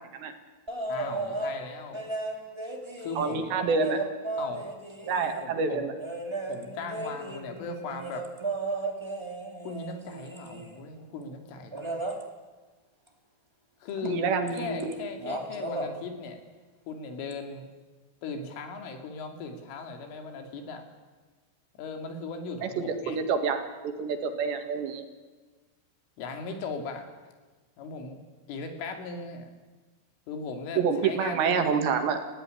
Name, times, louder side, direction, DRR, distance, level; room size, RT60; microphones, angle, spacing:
sound 1, 0.7-1.6 1.9-5.5 6.0-10.8 11.7-12.2 14.0-14.2 14.5-14.9 15.2-15.9 17.3-17.4, right 2 dB, 30° right, 0.5 m, -35 dB
voice 1, 0.9-2.0 3.0-3.6 4.4-4.7 5.4-6.0 6.5-8.3 9.6-12.0 13.8-14.2 14.6-16.4 16.9-17.7 18.2-20.9 21.8-23.2 26.2-27.1 27.8-28.2 28.5-29.5 30.3-31.9, left 4 dB, 85° left, 5 dB, 5.2 m, -38 dB
voice 2, 3.2-4.0 5.1-5.9 14.0-15.0 22.6-25.0 30.8-32.2, right 5 dB, 70° right, 6 dB, 4.0 m, -27 dB
29.5 x 16.0 x 9.9 m, 1.3 s
omnidirectional pair, 5.5 m